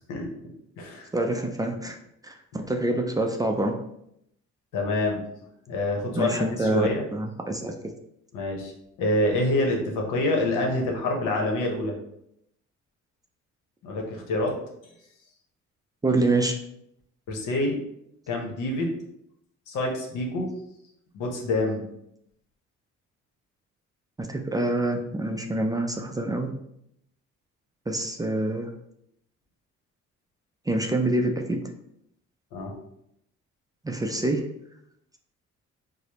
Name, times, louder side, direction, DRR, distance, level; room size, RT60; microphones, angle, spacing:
voice 1, 0.1-1.1 4.7-5.2 5.7-7.0 8.3-8.7 9.0-11.9 13.8-14.5 17.3-17.8 18.3-19.0 19.7-20.5 21.1-21.8 32.5-32.7, left 2 dB, 90° left, 1 dB, 0.9 m, -27 dB
voice 2, 1.1-2.0 2.2-3.7 6.1-7.9 16.0-16.5 24.2-26.5 27.9-28.7 30.7-31.6 33.8-34.4, right 2 dB, 15° right, 3 dB, 0.4 m, -26 dB
4.8 x 2.0 x 2.9 m, 0.77 s
cardioid pair, 90°, 30 cm